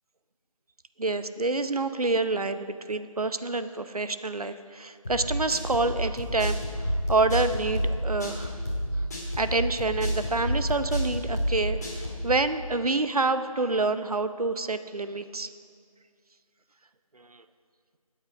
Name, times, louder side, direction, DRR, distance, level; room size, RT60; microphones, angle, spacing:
voice 1, 1.0-8.6 9.4-15.5 17.1-17.4, right 3 dB, 90° right, 11 dB, 0.8 m, -28 dB
sound 1, 5.0-12.3, equal, 30° left, 2.5 m, -30 dB
16.5 x 8.8 x 5.0 m, 2.2 s
figure-of-eight pair, 170°, 19 cm